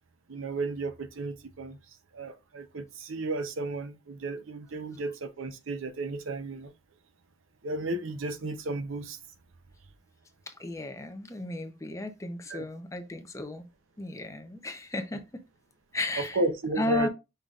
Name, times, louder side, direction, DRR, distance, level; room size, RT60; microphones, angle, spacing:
voice 1, 0.3-1.8 2.1-6.7 7.6-9.2 12.5-12.6 16.2-17.1, right 2 dB, 75° right, 0.7 m, -33 dB
voice 2, 10.5-13.7 14.0-15.2 15.9-16.4 16.8-17.1, left 2 dB, 15° left, 0.6 m, -34 dB
5.5 x 3.9 x 2.4 m
head